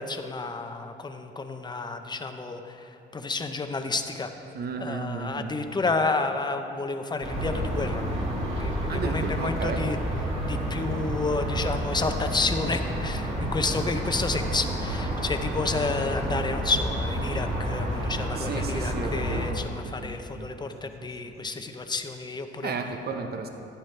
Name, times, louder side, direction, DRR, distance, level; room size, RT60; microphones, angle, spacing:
voice 1, 0.0-4.3 4.8-8.0 8.5-10.0 10.4-22.7, left 3 dB, 20° left, 7 dB, 0.7 m, -30 dB
voice 2, 4.5-5.8 8.9-9.8 18.4-19.6 19.8-20.5 22.6-23.5, right 4 dB, 55° right, 5 dB, 0.9 m, -34 dB
sound 1, 7.2-19.5, right 1 dB, 35° right, 2.4 m, -30 dB
12.5 x 9.1 x 3.3 m, 2.8 s
cardioid pair, 90°, 20 cm